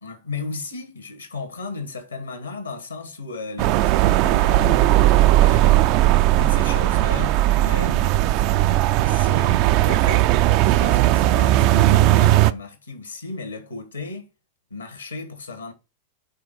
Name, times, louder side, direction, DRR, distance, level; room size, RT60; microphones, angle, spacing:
voice 1, 0.0-4.9 5.4-8.2 9.0-10.3 10.7-14.3 14.7-15.7, left 4 dB, 80° left, 1.5 m, -35 dB
sound 1, 3.6-12.5, right 15 dB, 45° right, 0.3 m, -17 dB
5.5 x 3.7 x 5.3 m
figure-of-eight pair, 90°, 0 cm